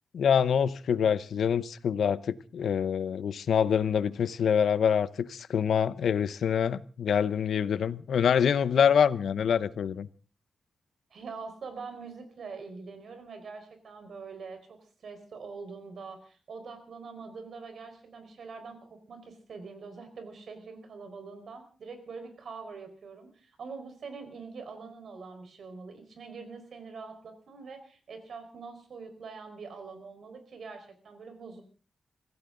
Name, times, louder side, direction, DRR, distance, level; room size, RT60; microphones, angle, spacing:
voice 1, 0.1-10.1, left 7 dB, 90° left, 0.7 m, -25 dB
voice 2, 11.1-31.6, right 4 dB, 70° right, 4.6 m, -44 dB
24.5 x 15.5 x 3.8 m
wide cardioid pair, 135°, 0 cm